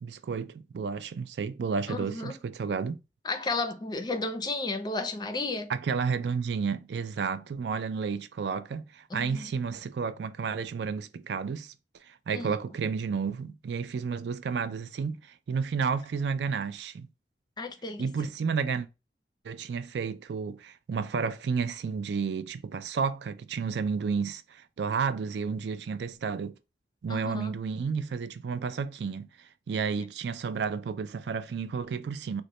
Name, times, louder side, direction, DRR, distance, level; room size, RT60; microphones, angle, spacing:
voice 1, 0.0-3.0 5.7-11.7 12.1-15.2 15.5-17.1 18.0-18.9 19.4-26.5 27.0-29.3 29.7-32.4, right 5 dB, 75° right, 0.4 m, -31 dB
voice 2, 1.9-2.3 3.2-5.7 9.1-9.5 12.3-12.6 17.6-18.1 27.1-27.6, left 3 dB, 25° left, 0.5 m, -33 dB
3.9 x 2.1 x 3.0 m
head